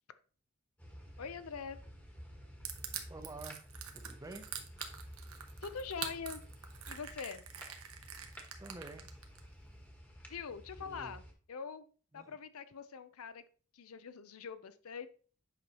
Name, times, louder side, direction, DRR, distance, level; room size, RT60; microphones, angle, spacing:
sound 1, 0.8-11.3, equal, 10° left, 1.1 m, -52 dB
voice 1, 1.2-1.8 5.6-6.4 6.9-7.4 10.3-11.9 12.1-13.4 13.7-15.1, left 6 dB, 90° left, 13 dB, 0.6 m, -44 dB
Crushing, 2.6-9.4, right 9 dB, 85° right, 1.0 m, -44 dB
voice 2, 3.1-3.6 3.9-4.5 8.6-9.1 10.8-11.1 12.1-12.4, right 2 dB, 15° right, 8 dB, 0.6 m, -48 dB
8.1 x 5.4 x 2.9 m, 0.41 s
head